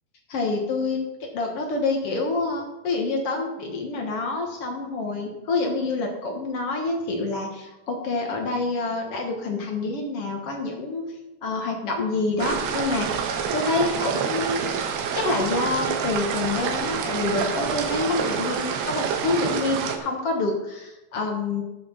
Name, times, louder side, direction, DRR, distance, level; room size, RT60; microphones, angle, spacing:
voice 1, 0.3-11.1 11.4-14.6 15.1-21.6, left 3 dB, 65° left, 2 dB, 1.5 m, -27 dB
sound 1, 12.4-20.0, right 7 dB, 85° right, 3.2 m, -27 dB
15.0 x 5.8 x 5.9 m, 0.97 s
omnidirectional pair, 4.7 m